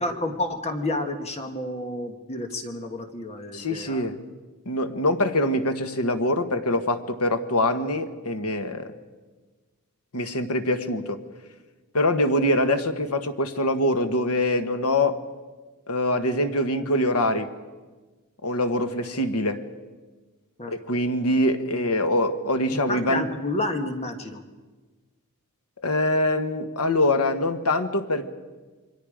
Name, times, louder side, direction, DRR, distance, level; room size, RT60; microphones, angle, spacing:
voice 1, 0.0-4.0 20.6-20.7 22.7-24.4, left 2 dB, 30° left, 6 dB, 1.5 m, -30 dB
voice 2, 3.5-4.2 4.6-8.9 10.1-11.2 11.9-15.2 15.9-17.5 18.4-19.6 20.7-23.3 25.8-28.3, left 1 dB, 80° left, 8 dB, 1.5 m, -24 dB
28.5 x 23.5 x 5.1 m, 1.3 s
head